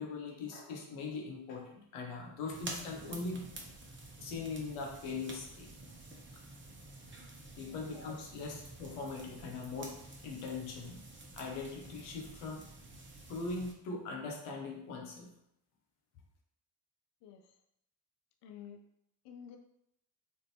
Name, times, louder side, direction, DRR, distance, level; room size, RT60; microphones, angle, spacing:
voice 1, 0.0-3.5 4.2-5.7 7.6-10.0 10.2-11.0 11.3-12.7 13.3-15.3, left 3 dB, 85° left, 1 dB, 0.8 m, -41 dB
sound 1, 2.5-13.7, right 2 dB, 25° right, 0.8 m, -50 dB
voice 2, 7.6-7.9 17.2-17.5 18.4-18.8 19.2-19.6, left 8 dB, 60° left, 4 dB, 0.5 m, -50 dB
3.5 x 2.6 x 2.7 m, 0.75 s
hypercardioid pair, 45°, 49 cm